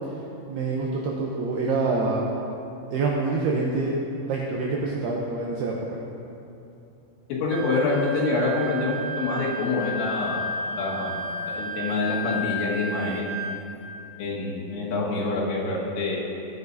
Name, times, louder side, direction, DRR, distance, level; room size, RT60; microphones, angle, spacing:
voice 1, 0.5-2.2 2.9-3.9 4.3-5.8, right 3 dB, 80° right, -2 dB, 2.3 m, -26 dB
voice 2, 7.3-10.5 10.8-13.5 14.2-16.2, left 3 dB, 75° left, -5 dB, 4.0 m, -26 dB
Wind instrument woodwind instrument, 7.5-13.7, equal, 25° right, 1.0 m, -32 dB
16.0 x 10.5 x 2.7 m, 2.7 s
omnidirectional pair, 5.6 m